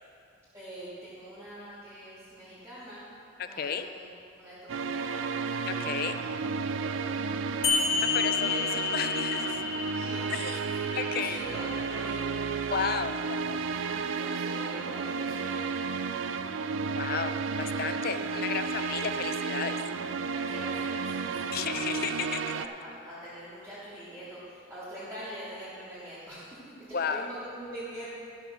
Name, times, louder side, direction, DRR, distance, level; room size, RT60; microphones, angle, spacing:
voice 1, 0.5-3.1 3.3-4.1 4.4-6.2 6.6-7.3 8.4-8.6 9.9-12.7 13.7-15.9 18.7-18.9 20.3-28.1, right 1 dB, 10° right, -12 dB, 2.8 m, -44 dB
voice 2, 3.4-3.9 5.7-6.2 8.1-8.5 8.9-9.6 10.3-10.7 10.9-11.4 12.7-13.6 16.9-19.8 21.5-22.4 26.9-27.3, left 6 dB, 45° left, 9 dB, 0.5 m, -33 dB
sound 1, 4.7-22.7, right 5 dB, 70° right, 0.4 m, -32 dB
sound 2, 7.6-12.6, left 6 dB, 70° left, 1.3 m, -32 dB
13.0 x 6.1 x 6.3 m, 2.6 s
head